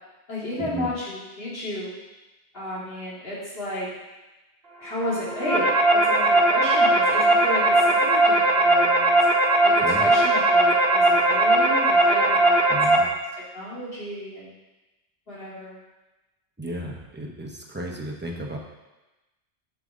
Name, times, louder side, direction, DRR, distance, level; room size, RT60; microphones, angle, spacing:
voice 1, 0.3-2.0 2.5-3.9 4.8-9.1 9.6-14.5 15.3-15.8, left 1 dB, 60° left, -8 dB, 2.9 m, -32 dB
sound 1, 5.1-13.0, right 1 dB, 65° right, 1.1 m, -19 dB
voice 2, 12.7-13.0 16.6-18.6, equal, 10° right, 0 dB, 0.9 m, -34 dB
7.7 x 6.9 x 3.7 m, 1.1 s
omnidirectional pair, 1.1 m